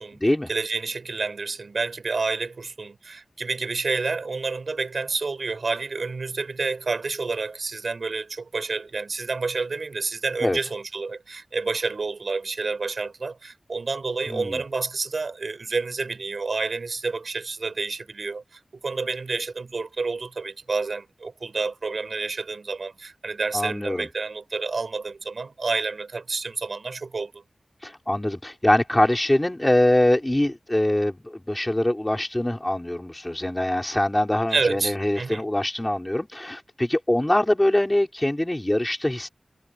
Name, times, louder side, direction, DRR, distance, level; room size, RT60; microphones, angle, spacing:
voice 1, 0.5-27.3 34.5-35.5, right 4 dB, 65° right, 6.1 m, -29 dB
voice 2, 14.3-14.6 23.5-24.1 27.8-39.3, left 1 dB, 15° left, 6.1 m, -23 dB
wide cardioid pair, 95°, 0 cm